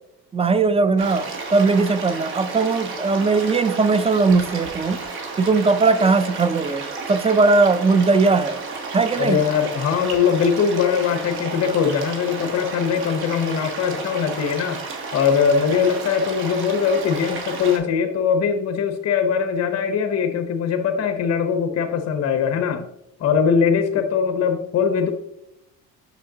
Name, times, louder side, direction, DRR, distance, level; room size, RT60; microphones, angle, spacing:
voice 1, 0.3-5.0 5.4-8.6 8.9-9.4, right 4 dB, 15° right, 0.3 m, -19 dB
sound 1, 1.0-17.8, right 4 dB, 80° right, 1.4 m, -32 dB
voice 2, 9.2-14.8 15.1-22.8 23.2-25.1, left 6 dB, 45° left, 0.8 m, -21 dB
6.3 x 6.0 x 2.7 m
cardioid pair, 90°, 37 cm